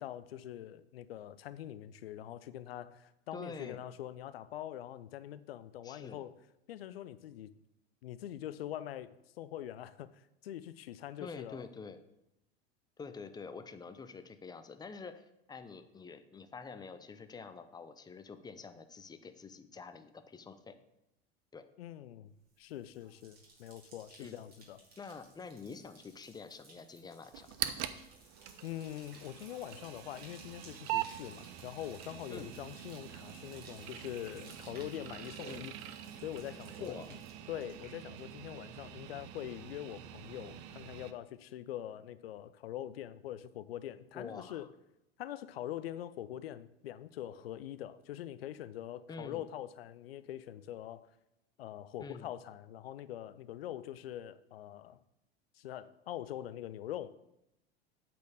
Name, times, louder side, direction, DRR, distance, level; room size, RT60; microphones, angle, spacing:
voice 1, 0.0-6.4 6.7-7.5 8.0-11.6 21.8-22.3 22.6-24.8 28.6-35.7 36.2-37.2 37.5-44.7 45.2-51.1 51.6-55.0 55.5-57.1, left 12 dB, 70° left, 14 dB, 0.5 m, -44 dB
voice 2, 3.3-3.8 5.8-6.3 11.2-12.0 13.0-20.8 21.5-21.7 24.2-24.4 25.0-27.5 32.3-32.5 35.5-35.7 36.8-37.1 44.1-44.7 49.1-49.5 52.0-52.3, left 4 dB, 15° left, 10 dB, 0.6 m, -47 dB
Bathtub (filling or washing), 22.4-38.5 38.8-39.3, right 2 dB, 30° right, 2.4 m, -59 dB
sound 1, 27.3-41.1, right 12 dB, 50° right, 0.6 m, -44 dB
8.3 x 4.4 x 6.4 m, 0.87 s
figure-of-eight pair, 80°, 32 cm